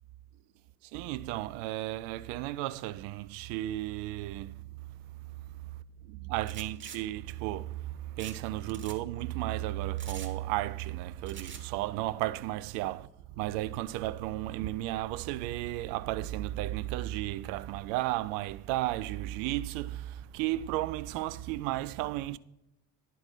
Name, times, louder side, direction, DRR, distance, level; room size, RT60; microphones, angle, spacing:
voice 1, 0.8-22.4, right 16 dB, 50° right, 0.5 m, -34 dB
sound 1, 6.4-7.0 8.2-8.4 8.6-9.0 10.0-10.3 11.3-11.6, right 6 dB, 25° right, 1.1 m, -45 dB
10.5 x 4.6 x 5.5 m
figure-of-eight pair, 65°, 45 cm